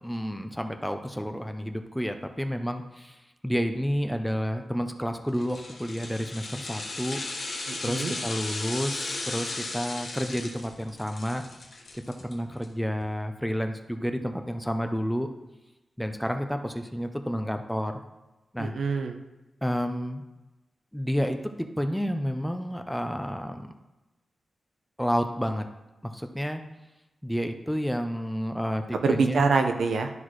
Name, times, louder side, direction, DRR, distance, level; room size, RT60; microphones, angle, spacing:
voice 1, 0.0-7.2 7.8-11.4 11.9-15.3 16.0-18.0 18.5-18.7 19.6-20.2 20.9-23.7 25.0-25.7 26.0-26.6 27.2-29.5, equal, ahead, 6 dB, 0.5 m, -30 dB
sound 1, 5.3-12.6 13.0-13.1, left 2 dB, 55° left, 1.3 m, -36 dB
voice 2, 7.7-8.1 18.6-19.2 28.9-30.1, right 4 dB, 80° right, 6 dB, 0.7 m, -25 dB
12.0 x 4.0 x 3.1 m, 1.0 s
wide cardioid pair, 115°, 0 cm